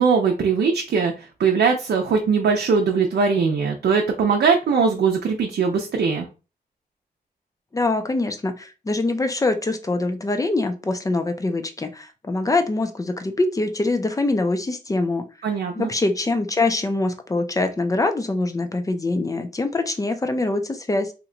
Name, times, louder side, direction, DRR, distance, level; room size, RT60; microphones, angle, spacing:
voice 1, 0.0-6.3 15.4-15.9, right 5 dB, 90° right, 1 dB, 0.6 m, -20 dB
voice 2, 7.7-15.2 15.7-21.1, left 2 dB, 20° left, 7 dB, 0.4 m, -24 dB
2.9 x 2.2 x 3.7 m, 0.31 s
wide cardioid pair, 140°, 17 cm